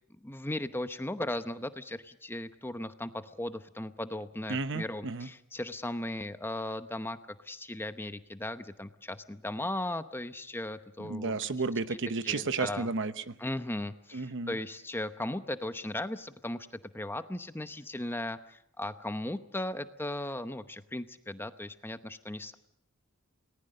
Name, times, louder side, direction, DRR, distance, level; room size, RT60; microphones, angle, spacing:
voice 1, 0.2-7.2 7.4-11.5 12.2-12.9 13.4-16.7 16.9-22.5, left 1 dB, 10° left, 10 dB, 0.8 m, -37 dB
voice 2, 4.5-5.3 11.0-13.4 14.1-14.6, right 4 dB, 60° right, 12 dB, 1.0 m, -32 dB
29.0 x 19.0 x 6.6 m, 0.73 s
head